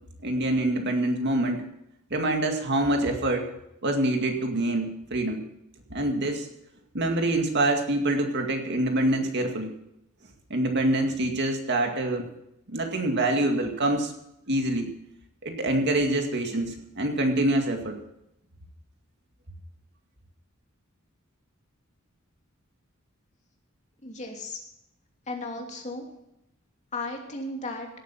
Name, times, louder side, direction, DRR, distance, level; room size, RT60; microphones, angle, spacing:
voice 1, 0.2-1.6 2.1-3.5 3.8-5.4 5.9-6.5 6.9-9.7 10.5-12.3 12.7-14.1 14.5-14.9 15.4-18.0, right 1 dB, 55° right, 3 dB, 2.1 m, -25 dB
voice 2, 24.0-24.6 25.3-26.1 26.9-27.9, left 2 dB, 35° left, 1 dB, 2.8 m, -35 dB
17.0 x 9.0 x 5.9 m, 0.82 s
head